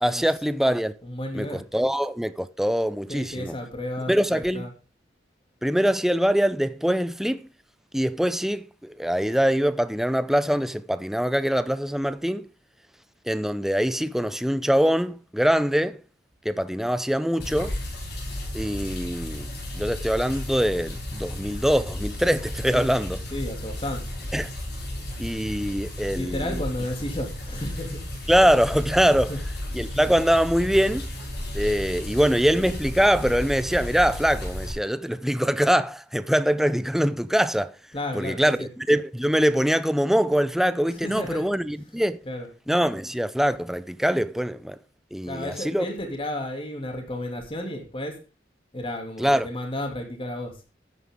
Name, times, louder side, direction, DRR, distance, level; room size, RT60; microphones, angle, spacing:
voice 1, 0.0-0.9 1.3-3.6 4.1-4.7 5.6-7.4 7.9-12.5 13.3-16.0 16.4-17.7 18.5-19.5 19.7-23.2 24.3-24.5 25.2-26.6 28.3-29.3 29.7-31.1 31.5-37.7 38.1-42.2 42.7-44.8 45.1-45.9 49.2-49.5, equal, ahead, 0.5 m, -23 dB
voice 2, 1.0-1.6 3.1-4.7 22.7-22.9 23.3-24.1 26.1-28.0 29.1-29.4 37.9-38.7 40.9-41.5 42.2-42.5 45.3-48.2 48.7-50.6, left 1 dB, 30° left, 2.8 m, -32 dB
sound 1, 17.4-34.7, left 1 dB, 60° left, 6.6 m, -34 dB
13.5 x 9.5 x 3.7 m
head